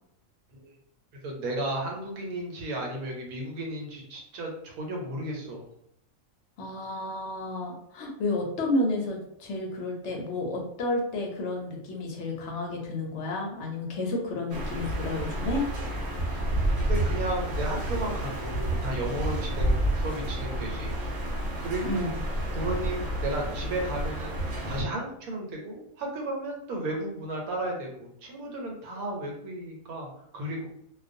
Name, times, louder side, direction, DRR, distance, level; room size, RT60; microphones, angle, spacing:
voice 1, 1.2-5.7 16.3-16.4 16.7-20.9 21.6-22.1 22.5-30.7, right 1 dB, 90° right, 0 dB, 1.2 m, -34 dB
voice 2, 6.6-15.7 21.8-22.1, left 2 dB, 65° left, 1 dB, 0.8 m, -31 dB
sound 1, 14.5-24.8, right 1 dB, 60° right, 0.8 m, -30 dB
2.3 x 2.2 x 2.5 m, 0.73 s
omnidirectional pair, 1.5 m